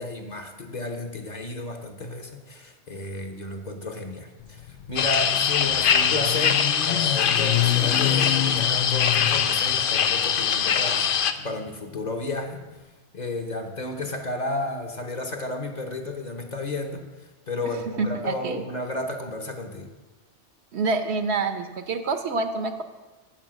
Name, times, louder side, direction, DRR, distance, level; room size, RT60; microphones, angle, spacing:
voice 1, 0.0-11.1 11.4-12.6 13.1-17.0 17.5-19.9, left 2 dB, 40° left, 4 dB, 1.1 m, -32 dB
Motorcycle, 4.4-12.6, left 12 dB, 90° left, 0.9 m, -30 dB
sound 1, 5.0-11.3, left 8 dB, 60° left, 0.7 m, -22 dB
voice 2, 18.0-18.6 20.7-22.8, right 3 dB, 70° right, 9 dB, 1.0 m, -27 dB
8.8 x 7.5 x 6.3 m, 1.2 s
omnidirectional pair, 1.2 m